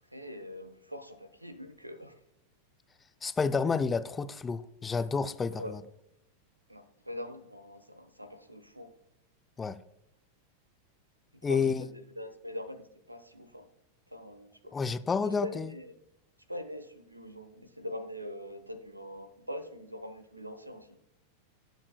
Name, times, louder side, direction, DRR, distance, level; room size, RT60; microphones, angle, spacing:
voice 1, 0.1-2.2 5.6-5.8 6.7-8.9 11.4-13.7 14.1-14.8 15.2-15.9 16.5-21.0, equal, 85° right, 11 dB, 0.9 m, -43 dB
voice 2, 3.2-5.8 9.6-9.8 11.4-11.9 14.7-15.7, left 5 dB, 15° left, 13 dB, 0.5 m, -30 dB
18.0 x 7.4 x 2.2 m, 0.79 s
figure-of-eight pair, 90°, 0 cm